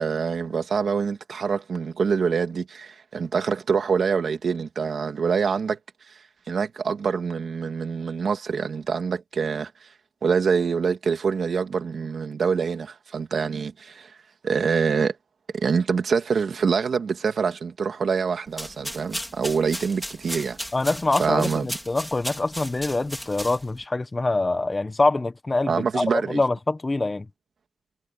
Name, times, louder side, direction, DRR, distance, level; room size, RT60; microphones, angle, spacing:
voice 1, 0.0-5.8 6.1-6.2 6.5-9.9 10.2-14.2 14.4-15.2 15.5-20.6 21.2-21.6 25.7-26.4, right 5 dB, 85° right, 2.5 m, -25 dB
sound 1, 18.5-23.8, equal, ahead, 4.7 m, -36 dB
voice 2, 20.7-27.3, left 2 dB, 30° left, 1.4 m, -25 dB
wide cardioid pair, 110°, 0 cm